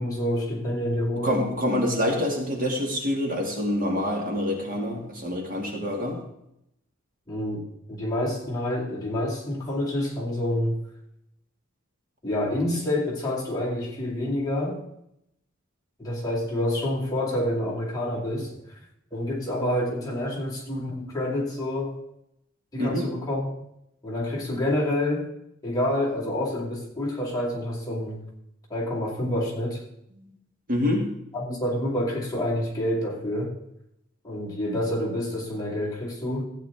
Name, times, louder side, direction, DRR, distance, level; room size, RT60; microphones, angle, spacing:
voice 1, 0.0-1.4 7.3-7.6 7.9-10.8 12.2-14.8 16.0-18.8 19.1-22.0 22.7-23.5 24.0-25.3 25.6-28.2 28.7-29.8 31.3-33.6 34.2-36.4, left 1 dB, 20° left, -5 dB, 2.5 m, -28 dB
voice 2, 1.2-6.2 22.8-23.0 30.2-30.3 30.7-31.1, left 1 dB, 40° right, 0 dB, 2.2 m, -26 dB
15.0 x 8.9 x 3.6 m, 0.79 s
head